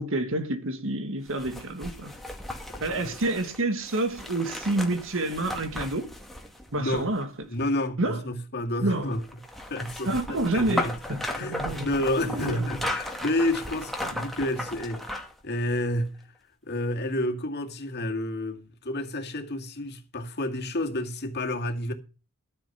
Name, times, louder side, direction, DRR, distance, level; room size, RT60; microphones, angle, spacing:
voice 1, 0.0-2.1 2.8-6.1 6.7-7.3 8.0-8.2 8.8-9.1 10.1-11.9 12.2-12.7 14.1-14.2, right 2 dB, 65° right, 1.7 m, -28 dB
sound 1, 1.3-7.4 9.1-15.4 15.8-15.9, left 1 dB, ahead, 1.9 m, -36 dB
voice 2, 2.7-3.2 6.8-7.1 7.5-9.2 9.7-16.2 16.7-21.9, left 1 dB, 50° left, 2.3 m, -30 dB
14.0 x 7.3 x 5.8 m
head